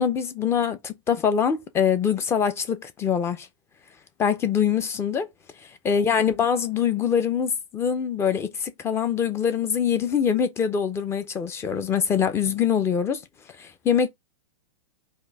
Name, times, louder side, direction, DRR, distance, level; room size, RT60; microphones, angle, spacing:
voice 1, 0.0-3.5 4.2-5.3 5.8-13.2 13.6-14.1, left 7 dB, 15° left, 0.5 m, -24 dB
4.3 x 2.8 x 3.4 m
hypercardioid pair, 140°, 18 cm